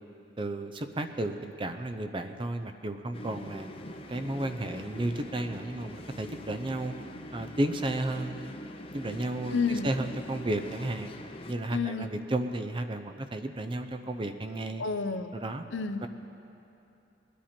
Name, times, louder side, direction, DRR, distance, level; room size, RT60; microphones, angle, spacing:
voice 1, 0.4-3.7 4.1-6.9 7.3-8.5 8.9-11.1 11.5-14.8 15.3-15.6 16.0-16.1, right 1 dB, 25° right, 8 dB, 0.5 m, -33 dB
sound 1, 3.1-11.5, left 1 dB, 30° left, 0.7 m, -43 dB
voice 2, 9.5-9.9 11.7-12.1 14.8-15.3 15.7-16.0, left 5 dB, 80° left, 9 dB, 0.6 m, -30 dB
20.5 x 10.0 x 4.4 m, 2.8 s
head